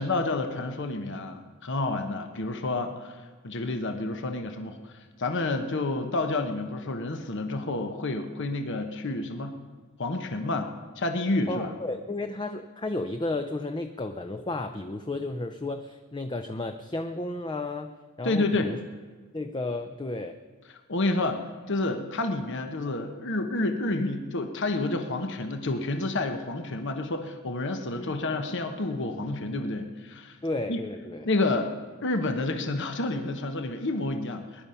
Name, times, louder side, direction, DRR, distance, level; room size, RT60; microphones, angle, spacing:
voice 1, 0.0-9.6 10.0-10.7 11.0-11.7 18.2-18.7 20.9-30.4 30.7-30.8 31.2-31.7 32.0-34.7, left 2 dB, 60° left, 7 dB, 1.1 m, -29 dB
voice 2, 11.5-17.9 18.2-18.8 19.3-20.4 28.0-28.1 30.4-31.3, left 2 dB, 20° left, 7 dB, 0.6 m, -33 dB
21.5 x 11.0 x 5.7 m, 1.4 s
head